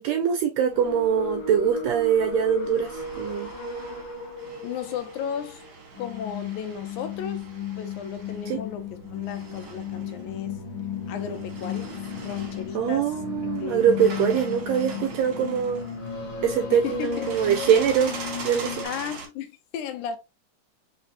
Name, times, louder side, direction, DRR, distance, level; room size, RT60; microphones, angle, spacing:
voice 1, 0.0-3.5 8.5-8.6 12.7-15.8 16.4-18.2 18.4-18.8, right 8 dB, 85° right, 1.5 m, -23 dB
sound 1, 0.7-18.9, left 6 dB, 45° left, 2.1 m, -34 dB
sound 2, 0.7-19.3, right 4 dB, 55° right, 1.1 m, -43 dB
voice 2, 4.6-5.7 6.0-7.5 7.8-10.6 11.1-11.9 12.2-13.1 13.6-14.0 16.7-17.3 18.8-20.2, left 8 dB, 85° left, 2.1 m, -34 dB
4.8 x 3.3 x 2.7 m
omnidirectional pair, 3.5 m